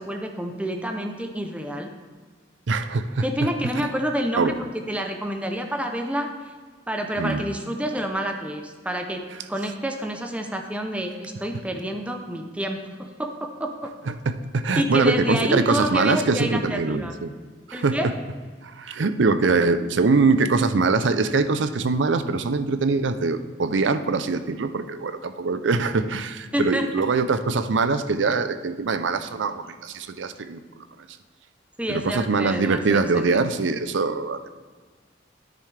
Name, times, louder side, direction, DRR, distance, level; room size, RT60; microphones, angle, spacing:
voice 1, 0.0-1.9 3.2-6.3 6.9-9.2 9.5-13.9 14.8-17.1 17.7-18.1 26.5-26.9 31.8-33.3, equal, 5° right, 3 dB, 0.6 m, -28 dB
voice 2, 2.7-3.2 4.4-4.5 7.2-7.4 14.1-17.3 17.7-18.0 18.6-30.6 31.9-34.5, right 4 dB, 90° right, 11 dB, 0.5 m, -23 dB
9.6 x 9.3 x 3.3 m, 1.5 s
head